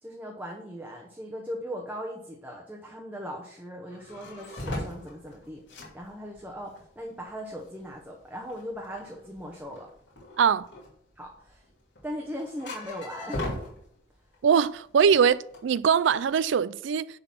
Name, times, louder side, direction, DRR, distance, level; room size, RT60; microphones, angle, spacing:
voice 1, 0.0-5.6 5.9-9.9 11.2-11.6 12.0-13.4, equal, 10° right, 0.9 m, -39 dB
sound 1, 3.9-14.4 14.7-16.4, left 1 dB, 60° left, 2.6 m, -39 dB
voice 2, 14.4-17.1, right 7 dB, 70° right, 0.3 m, -22 dB
10.0 x 3.9 x 5.9 m
head